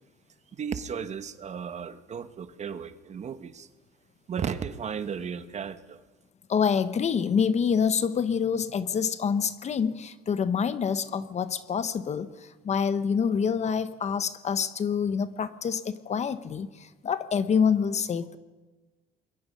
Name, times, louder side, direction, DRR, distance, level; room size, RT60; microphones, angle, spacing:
voice 1, 0.5-3.7 4.3-6.0, right 7 dB, 40° right, 11 dB, 1.2 m, -35 dB
voice 2, 6.5-18.4, left 6 dB, 40° left, 13 dB, 1.1 m, -27 dB
26.5 x 22.0 x 5.4 m, 1.2 s
cardioid pair, 110°, 17 cm